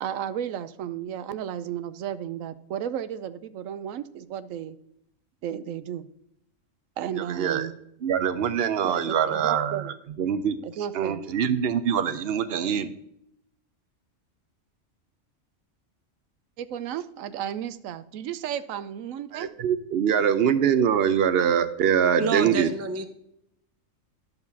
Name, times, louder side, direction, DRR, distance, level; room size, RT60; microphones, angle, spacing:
voice 1, 0.0-4.8 5.4-6.1 7.0-7.7 8.8-9.9 10.6-11.2 16.6-19.5, right 10 dB, 85° right, 14 dB, 1.0 m, -33 dB
voice 2, 7.2-7.7 8.0-10.6 10.9-12.9 19.3-22.7, right 8 dB, 60° right, 12 dB, 0.8 m, -24 dB
voice 3, 22.2-23.1, right 3 dB, 20° right, 8 dB, 0.4 m, -28 dB
10.5 x 6.8 x 2.7 m, 0.76 s
omnidirectional pair, 1.3 m